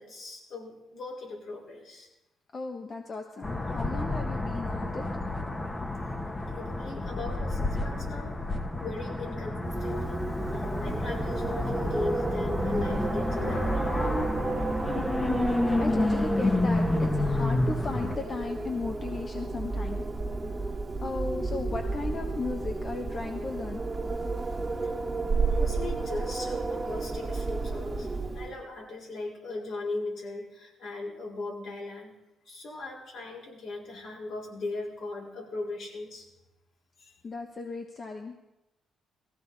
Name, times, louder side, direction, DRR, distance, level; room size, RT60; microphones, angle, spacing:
voice 1, 0.0-2.1 6.5-8.4 8.7-14.0 24.8-24.9 25.5-32.2 32.5-36.3 37.0-37.1, left 2 dB, 70° left, -3 dB, 5.2 m, -38 dB
voice 2, 2.5-5.1 14.4-14.6 15.8-20.0 20.6-20.7 21.0-23.8 37.2-38.3, left 3 dB, 40° left, 3 dB, 1.3 m, -36 dB
sound 1, 3.4-18.2, left 2 dB, 20° left, 1.3 m, -30 dB
Wind, 9.6-28.6, right 3 dB, 25° right, 1.6 m, -32 dB
19.0 x 15.5 x 4.1 m, 0.96 s
cardioid pair, 90°, 0 cm